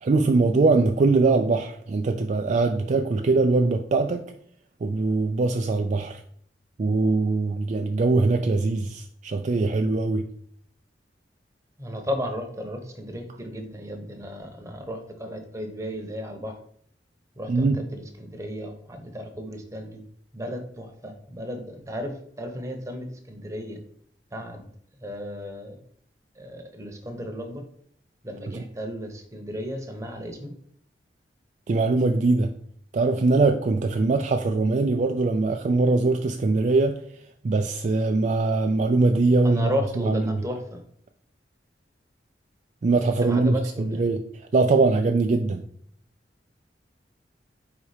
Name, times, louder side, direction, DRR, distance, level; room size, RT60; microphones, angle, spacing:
voice 1, 0.0-4.2 4.8-6.2 6.8-10.3 17.5-17.8 28.5-28.6 31.7-32.5 32.9-39.7 40.0-40.2 42.8-44.2 44.5-45.6, right 3 dB, 40° right, 5 dB, 0.4 m, -22 dB
voice 2, 11.8-16.6 17.3-20.0 20.3-23.8 24.3-24.7 25.0-25.8 26.3-27.6 28.2-30.5 39.4-40.8 43.2-44.1, equal, 15° right, 4 dB, 0.9 m, -34 dB
4.7 x 4.1 x 4.9 m, 0.64 s
head